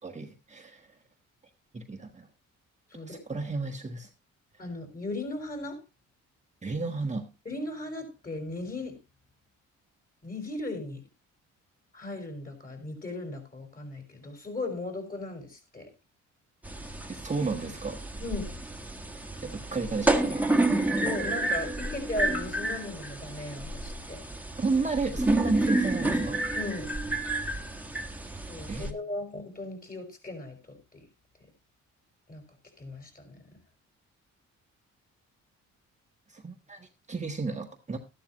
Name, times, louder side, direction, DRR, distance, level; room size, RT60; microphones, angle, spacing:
voice 1, 0.0-1.0 1.7-2.3 3.1-4.1 6.6-7.3 17.1-18.0 19.4-20.5 24.6-26.4 28.7-28.9 36.3-38.0, right 3 dB, 25° right, 3 dB, 1.4 m, -32 dB
voice 2, 4.6-5.8 7.5-9.0 10.2-11.0 11.9-15.9 18.2-18.4 21.0-24.2 26.5-26.9 28.5-31.0 32.3-32.4 32.8-33.4, left 2 dB, 30° left, 5 dB, 5.7 m, -37 dB
sound 1, 16.6-28.9, right 2 dB, 5° right, 1.7 m, -30 dB
13.5 x 12.0 x 3.0 m, 0.25 s
cardioid pair, 90°, 30 cm